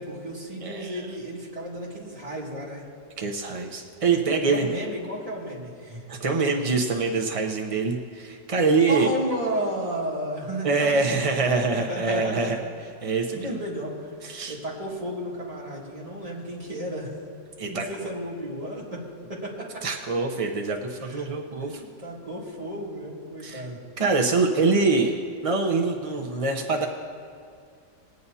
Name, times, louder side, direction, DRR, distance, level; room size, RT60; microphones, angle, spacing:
voice 1, 0.0-2.9 4.3-6.0 6.5-6.6 8.9-11.5 11.7-12.7 13.3-14.1 14.5-17.1 17.6-19.0 19.3-19.8 21.0-21.3 21.6-23.8, equal, 20° right, -5 dB, 2.0 m, -33 dB
voice 2, 0.6-1.1 3.2-4.7 6.1-9.1 10.6-12.6 13.0-13.6 14.2-14.6 17.6-18.1 19.8-21.8 23.4-23.7 24.0-26.9, right 4 dB, 55° right, 1 dB, 0.4 m, -25 dB
21.0 x 9.4 x 2.8 m, 2.3 s
omnidirectional pair, 1.8 m